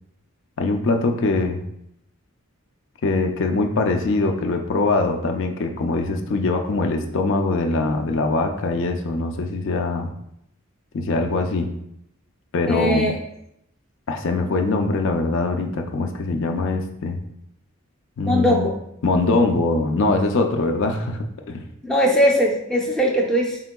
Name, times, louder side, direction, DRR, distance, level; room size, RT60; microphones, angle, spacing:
voice 1, 0.6-1.6 3.0-10.1 10.9-11.7 12.5-13.1 14.1-17.2 18.2-18.7 19.0-21.6, left 3 dB, 60° left, 4 dB, 0.4 m, -22 dB
voice 2, 12.7-13.2 18.3-18.7 21.8-23.6, equal, 5° left, -2 dB, 0.5 m, -19 dB
4.3 x 3.7 x 2.2 m, 0.76 s
head